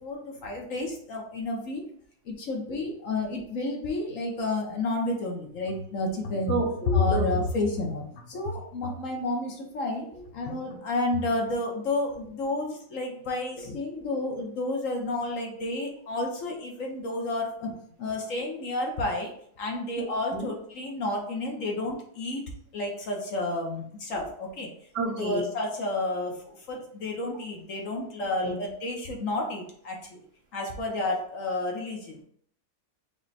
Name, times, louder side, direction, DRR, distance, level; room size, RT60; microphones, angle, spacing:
voice 1, 0.0-1.8 2.3-6.6 6.9-17.7 18.0-19.3 19.6-22.4 22.7-24.7 25.1-30.2 30.5-32.2, left 2 dB, 60° left, 0 dB, 1.1 m, -31 dB
sound 1, 5.6-9.1 10.5-10.8 11.1-11.5, left 4 dB, 85° left, 1.3 m, -30 dB
voice 2, 6.5-7.3 20.0-20.1 20.3-20.5 25.0-25.4 28.4-28.5, right 2 dB, 80° right, -1 dB, 1.8 m, -29 dB
5.0 x 2.2 x 4.1 m, 0.64 s
omnidirectional pair, 1.7 m